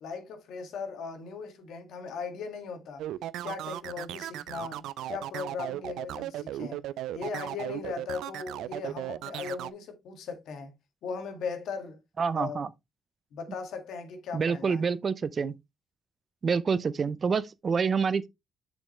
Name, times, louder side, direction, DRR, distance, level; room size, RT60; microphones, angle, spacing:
voice 1, 0.0-3.1 3.4-6.8 7.1-10.7 11.0-12.0 12.3-12.6 13.3-14.8, left 5 dB, 80° left, 1.9 m, -38 dB
sound 1, 3.0-9.7, right 13 dB, 85° right, 0.3 m, -36 dB
voice 2, 12.2-12.7 14.3-15.6 16.4-18.3, right 5 dB, 40° right, 0.6 m, -27 dB
7.0 x 5.2 x 3.1 m
cardioid pair, 90°, 0 cm